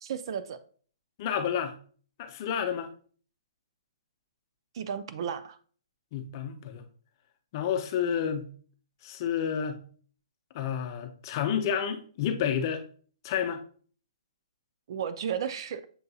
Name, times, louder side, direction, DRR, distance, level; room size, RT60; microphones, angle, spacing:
voice 1, 0.0-0.6 4.7-5.6 14.9-15.9, right 8 dB, 55° right, 0.4 m, -33 dB
voice 2, 1.2-1.7 2.2-2.9 6.1-6.8 7.5-8.5 9.0-9.8 10.5-12.8 13.2-13.6, left 8 dB, 40° left, 0.6 m, -30 dB
6.8 x 2.7 x 2.3 m
hypercardioid pair, 140°, 3 cm